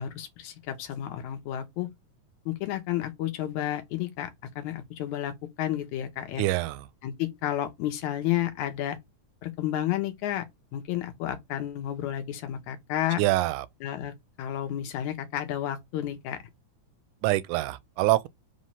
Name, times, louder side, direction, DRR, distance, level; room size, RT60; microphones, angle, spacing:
voice 1, 0.0-1.9 2.5-4.3 4.6-6.4 7.0-9.0 9.4-10.5 10.7-13.2 13.8-16.4, left 12 dB, 75° left, 2.3 m, -31 dB
voice 2, 6.4-6.8 13.2-13.7 17.2-18.3, right 17 dB, 85° right, 2.0 m, -25 dB
5.5 x 3.2 x 5.4 m
omnidirectional pair, 3.5 m